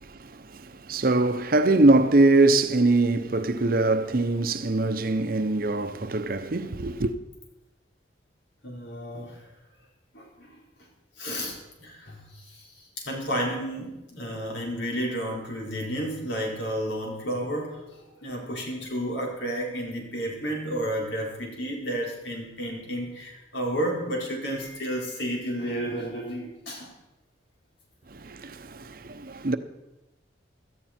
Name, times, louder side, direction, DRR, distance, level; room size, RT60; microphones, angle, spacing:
voice 1, 0.0-7.1 28.1-29.6, right 2 dB, 50° right, 0.8 m, -23 dB
voice 2, 8.6-9.4 10.1-10.6 11.2-26.9, equal, 85° left, 4.4 m, -32 dB
17.0 x 13.5 x 4.4 m
head